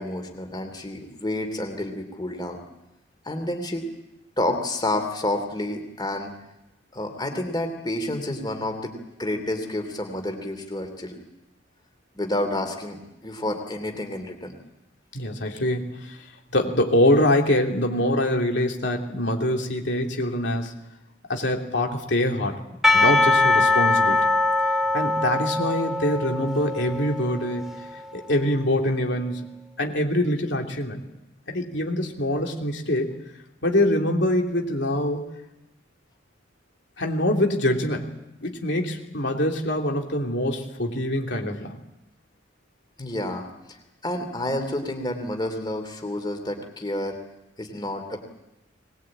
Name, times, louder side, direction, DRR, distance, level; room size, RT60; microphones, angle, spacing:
voice 1, 0.0-2.6 3.2-3.9 4.4-6.3 6.9-11.2 12.1-14.5 43.0-43.8 44.0-47.2 47.6-48.2, left 1 dB, 20° left, 5 dB, 3.0 m, -29 dB
voice 2, 15.1-16.3 16.5-20.7 21.3-22.6 22.9-24.2 24.9-27.7 28.1-29.5 29.8-31.0 31.5-33.1 33.6-35.3 37.0-38.1 38.4-41.8, left 1 dB, 65° left, 2 dB, 3.0 m, -24 dB
Percussion / Church bell, 22.8-28.1, left 2 dB, ahead, 1.9 m, -22 dB
22.5 x 20.5 x 8.8 m, 0.92 s
head